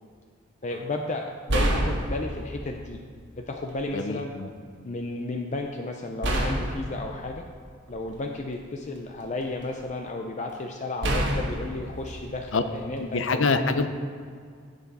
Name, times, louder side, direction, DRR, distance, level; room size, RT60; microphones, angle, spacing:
voice 1, 0.6-3.0 3.4-4.3 4.8-7.4 7.9-13.9, left 2 dB, 40° left, 3 dB, 0.6 m, -33 dB
sound 1, 0.7-0.9 1.5-2.8 3.7-3.8 6.2-8.4 9.0-9.8 11.0-13.1, right 1 dB, 65° right, 1.4 m, -29 dB
voice 2, 3.9-4.5 12.5-12.6 13.0-13.9, left 4 dB, 80° left, 9 dB, 0.7 m, -25 dB
16.0 x 5.9 x 4.2 m, 2.1 s
head